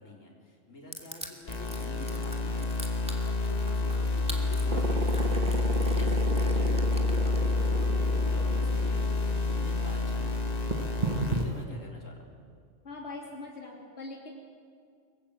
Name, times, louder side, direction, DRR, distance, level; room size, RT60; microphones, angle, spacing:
voice 1, 0.0-5.6 5.9-9.2 9.5-10.6 11.2-12.2, left 1 dB, 85° left, 0 dB, 4.2 m, -47 dB
Crushing, 0.9-7.7, equal, 5° right, 2.6 m, -43 dB
sound 1, 1.5-11.5, left 3 dB, 30° left, 1.7 m, -28 dB
sound 2, 4.7-11.6, right 3 dB, 35° right, 1.4 m, -34 dB
voice 2, 12.8-14.3, left 3 dB, 60° left, -1 dB, 3.3 m, -42 dB
25.0 x 22.5 x 8.7 m, 2.2 s
omnidirectional pair, 1.3 m